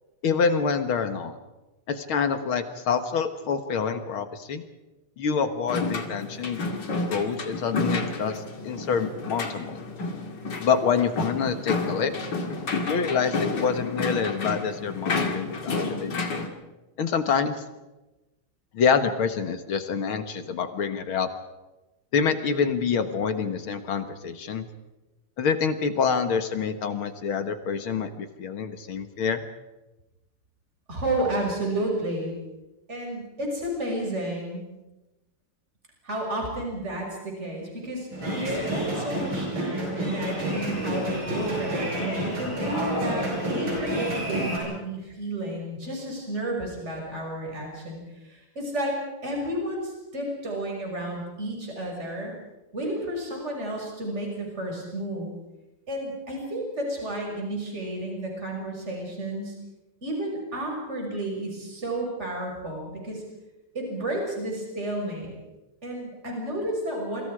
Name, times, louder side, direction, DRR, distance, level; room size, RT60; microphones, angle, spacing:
voice 1, 0.2-1.4 1.9-4.6 5.2-6.6 7.1-9.8 10.6-12.1 12.9-16.2 17.0-17.6 18.7-21.3 22.1-24.7 25.4-29.4, left 6 dB, 70° left, 9 dB, 2.4 m, -26 dB
sound 1, 5.7-16.5, left 3 dB, 50° left, 2.9 m, -30 dB
voice 2, 30.9-32.4 32.9-34.6 36.0-49.0 49.2-52.3 52.7-55.3 55.9-59.5 60.0-63.2 63.7-65.4 65.8-67.2, right 1 dB, 30° right, 0 dB, 6.5 m, -31 dB
sound 2, 38.1-44.6, right 1 dB, 60° right, 8.0 m, -29 dB
28.0 x 25.5 x 4.9 m, 1.0 s
omnidirectional pair, 2.4 m